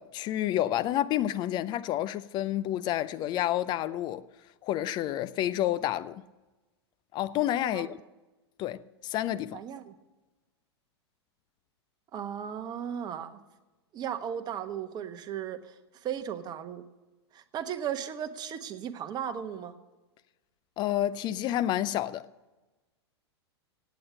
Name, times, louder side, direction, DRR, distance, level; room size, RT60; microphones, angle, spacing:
voice 1, 0.0-4.2 4.6-6.2 7.1-8.0 8.6-9.6 20.8-22.3, left 13 dB, 30° left, 0.5 m, -29 dB
voice 2, 9.5-9.9 12.1-13.4 13.9-15.7 16.0-16.8 17.3-19.7, right 9 dB, 30° right, 1.2 m, -36 dB
17.0 x 8.4 x 6.4 m
figure-of-eight pair, 95°, 14 cm